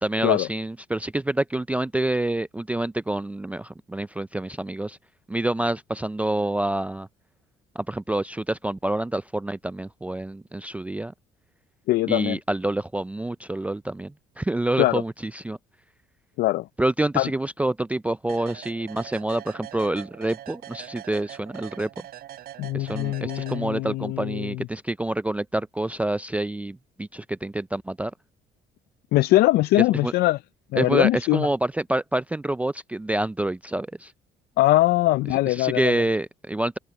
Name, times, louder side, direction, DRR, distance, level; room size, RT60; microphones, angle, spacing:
voice 1, 0.0-5.0 5.3-7.1 7.8-11.1 12.1-15.6 16.8-21.9 22.7-28.1 30.0-30.1 30.8-34.1 35.5-36.8, right 1 dB, 10° right, 0.4 m, -27 dB
voice 2, 11.9-12.4 14.8-15.0 16.4-16.7 17.2-17.3 22.6-24.7 29.1-30.4 30.7-31.5 34.6-35.9, left 17 dB, 70° left, 0.4 m, -22 dB
sound 1, 18.3-24.1, right 12 dB, 65° right, 6.0 m, -42 dB
cardioid pair, 110°, 17 cm